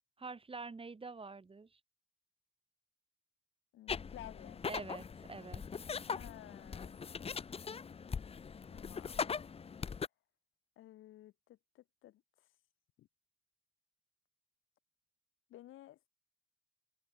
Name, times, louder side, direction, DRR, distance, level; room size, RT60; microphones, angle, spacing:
voice 1, 0.2-1.8 4.7-5.6, right 4 dB, 25° right, 5.0 m, -46 dB
voice 2, 3.7-4.6 6.0-7.0 8.7-9.3 10.8-12.2 13.0-13.1 15.5-16.1, left 14 dB, 85° left, 7.5 m, -54 dB
sound 1, 3.9-10.1, left 6 dB, 30° left, 0.7 m, -41 dB
cardioid pair, 90°, 20 cm